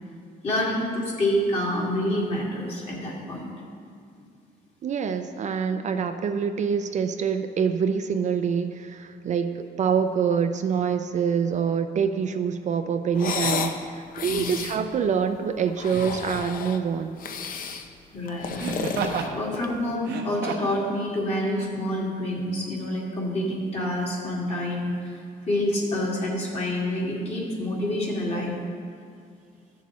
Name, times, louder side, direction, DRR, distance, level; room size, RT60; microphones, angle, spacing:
voice 1, 0.4-3.5 14.2-14.6 18.1-18.6 19.3-28.5, left 1 dB, 40° left, -4 dB, 2.3 m, -27 dB
voice 2, 4.8-17.2, right 7 dB, 45° right, 7 dB, 0.4 m, -26 dB
sound 1, 13.1-13.8 14.1-14.8 15.7-16.8 17.2-17.9 18.3-19.8, left 6 dB, 55° left, 0.6 m, -31 dB
Laughter, 14.4-14.5 15.9-16.2 18.6-19.3 20.0-20.8 21.5-21.7, right 5 dB, 85° right, 1.0 m, -31 dB
14.0 x 7.0 x 3.1 m, 2.2 s
cardioid pair, 125°, 17 cm